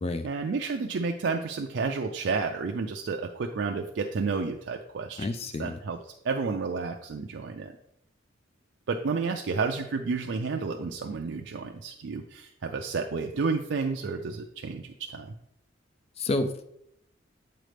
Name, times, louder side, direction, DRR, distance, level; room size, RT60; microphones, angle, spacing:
voice 1, 0.2-5.3 5.6-6.0 6.2-7.7 8.9-15.3, right 4 dB, 65° right, 3 dB, 0.4 m, -31 dB
voice 2, 5.2-5.8 16.2-16.6, left 2 dB, 30° left, 9 dB, 0.4 m, -29 dB
7.7 x 4.0 x 3.3 m, 0.76 s
head